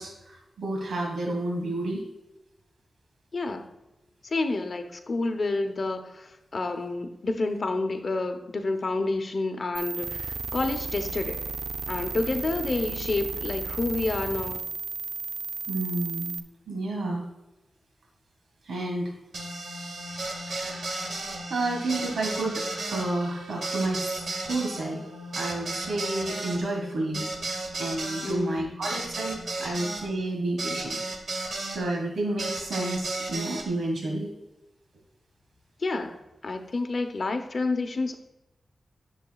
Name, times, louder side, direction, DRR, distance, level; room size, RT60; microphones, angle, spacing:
voice 1, 0.0-2.0 15.7-16.4 16.7-17.3 18.6-19.1 20.4-20.9 21.5-25.1 25.3-27.3 27.7-31.0 31.3-34.3, right 2 dB, 85° right, 1 dB, 1.8 m, -31 dB
voice 2, 3.3-3.7 4.2-11.4 11.9-14.6 28.2-28.7 29.6-29.8 35.8-38.1, left 3 dB, 40° left, 6 dB, 0.8 m, -29 dB
sound 1, 9.7-16.4, right 4 dB, 45° right, 0.6 m, -34 dB
sound 2, 19.3-31.8 32.4-33.7, right 2 dB, 70° right, 1.9 m, -34 dB
10.5 x 7.2 x 2.4 m, 0.95 s
wide cardioid pair, 170°, 0 cm